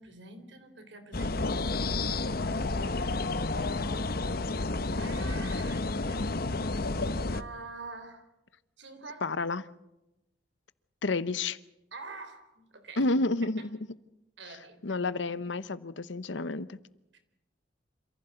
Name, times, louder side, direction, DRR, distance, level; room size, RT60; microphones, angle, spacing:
voice 1, 0.0-2.9 4.9-6.3 7.3-8.3 8.8-9.3 11.9-13.1 13.6-13.7 14.4-15.0 17.1-17.2, right 3 dB, 75° right, 8 dB, 3.6 m, -46 dB
sound 1, 1.1-7.4, left 2 dB, 55° left, 0.9 m, -30 dB
voice 2, 9.2-9.6 11.0-11.6 13.0-13.6 14.8-16.8, left 3 dB, 80° left, 16 dB, 0.9 m, -30 dB
27.5 x 15.5 x 7.9 m, 0.93 s
head